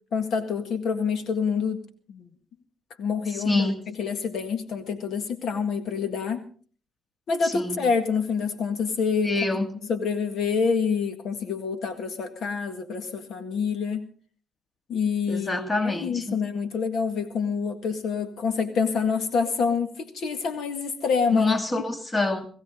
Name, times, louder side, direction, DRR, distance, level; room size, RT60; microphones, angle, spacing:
voice 1, 0.1-1.8 2.1-2.3 3.0-3.7 4.0-6.4 7.3-9.3 9.9-14.1 14.9-21.8, left 5 dB, 70° left, 1.8 m, -27 dB
voice 2, 3.3-3.8 7.4-7.8 9.2-9.8 15.3-16.4 21.3-22.5, left 2 dB, 25° left, 2.2 m, -26 dB
19.5 x 16.0 x 3.8 m
cardioid pair, 90°, 0 cm